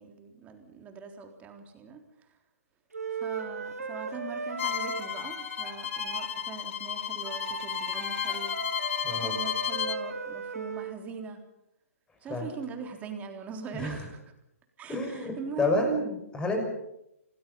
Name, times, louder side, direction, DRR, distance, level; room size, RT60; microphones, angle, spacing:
voice 1, 0.0-2.3 3.1-8.6 9.2-11.4 12.2-14.2 14.8-15.8, right 5 dB, 20° right, 4 dB, 3.7 m, -41 dB
Wind instrument woodwind instrument, 2.9-6.4 7.2-11.0, right 4 dB, 80° right, 3.1 m, -37 dB
Bowed string instrument, 4.6-10.0, left 10 dB, 55° left, 1.1 m, -33 dB
voice 2, 13.7-14.1 14.9-16.6, left 1 dB, 10° left, 4 dB, 6.2 m, -29 dB
28.0 x 19.5 x 5.6 m, 0.82 s
hypercardioid pair, 135°, 8 cm